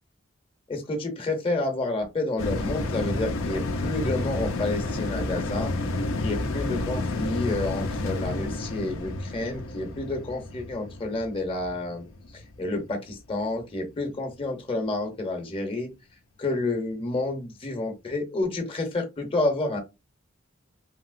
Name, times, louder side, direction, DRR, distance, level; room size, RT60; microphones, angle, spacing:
voice 1, 0.7-5.7 6.2-12.1 12.6-15.9 16.4-19.8, left 2 dB, 25° left, 0.7 m, -29 dB
sound 1, 2.4-13.1 13.5-13.6, left 2 dB, 80° left, 0.5 m, -30 dB
2.9 x 2.8 x 2.4 m
head